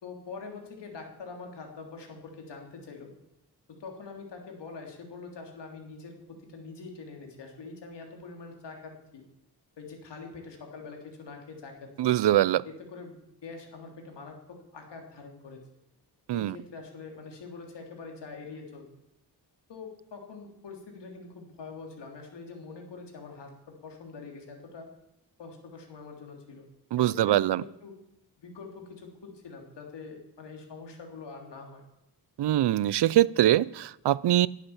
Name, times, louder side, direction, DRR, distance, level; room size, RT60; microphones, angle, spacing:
voice 1, 0.0-3.1 3.7-9.2 9.8-12.1 12.6-13.1 13.4-15.6 16.3-18.8 19.7-24.9 25.4-26.6 27.0-28.0 28.4-31.8, left 4 dB, 85° left, 2 dB, 3.3 m, -44 dB
voice 2, 12.0-12.6 16.3-16.5 26.9-27.6 32.4-34.5, right 13 dB, 75° right, 21 dB, 0.5 m, -23 dB
18.5 x 8.3 x 7.2 m, 0.82 s
wide cardioid pair, 145°, 41 cm